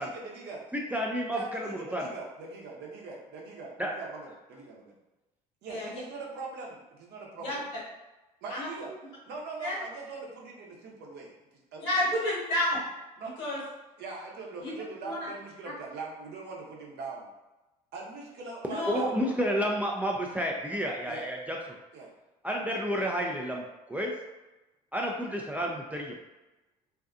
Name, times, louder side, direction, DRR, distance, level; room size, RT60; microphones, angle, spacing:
voice 1, 0.0-0.6 1.3-4.9 5.6-7.7 8.4-8.9 9.3-11.3 11.7-11.8 13.2-13.3 14.0-17.3 17.9-19.3 21.1-21.2 21.9-22.1, right 3 dB, 55° right, -2 dB, 0.8 m, -41 dB
voice 2, 0.7-2.1 3.8-3.9 18.9-21.8 22.4-24.1 24.9-26.2, equal, 10° right, -1 dB, 0.4 m, -31 dB
voice 3, 7.4-7.8 8.5-8.7 9.6-9.8 11.8-12.8 13.4-13.6 14.6-14.7 15.0-15.3 18.6-19.1, left 1 dB, 70° left, -6 dB, 1.3 m, -30 dB
2.6 x 2.3 x 2.4 m, 1.0 s
hypercardioid pair, 65°, 20 cm